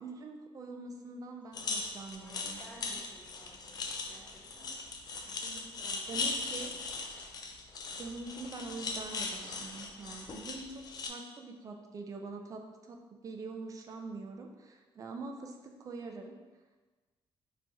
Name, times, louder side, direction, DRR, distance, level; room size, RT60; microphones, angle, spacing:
voice 1, 0.0-2.6 6.1-6.8 7.9-16.3, right 3 dB, 35° right, 4 dB, 0.3 m, -44 dB
sound 1, 1.5-11.1, left 3 dB, 45° left, 0.3 m, -39 dB
voice 2, 2.2-4.7 5.2-6.7, right 1 dB, 15° left, -8 dB, 1.2 m, -55 dB
3.1 x 2.6 x 3.4 m, 1.3 s
cardioid pair, 155°, 10 cm